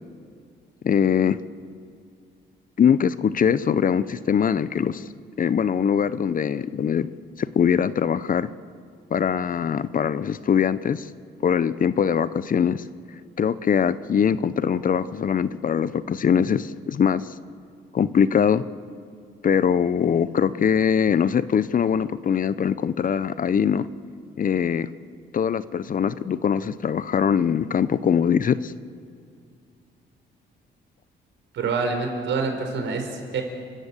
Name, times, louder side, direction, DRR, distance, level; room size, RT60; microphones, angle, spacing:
voice 1, 0.8-1.4 2.8-5.1 5.4-7.1 7.4-8.5 9.1-11.1 11.4-12.8 13.4-17.3 17.9-18.6 19.4-23.9 24.4-24.9 25.3-28.7, left 7 dB, 45° left, 15 dB, 0.7 m, -22 dB
voice 2, 31.5-33.4, right 4 dB, 70° right, 4 dB, 4.4 m, -26 dB
30.0 x 13.0 x 8.3 m, 2.3 s
cardioid pair, 90°, 20 cm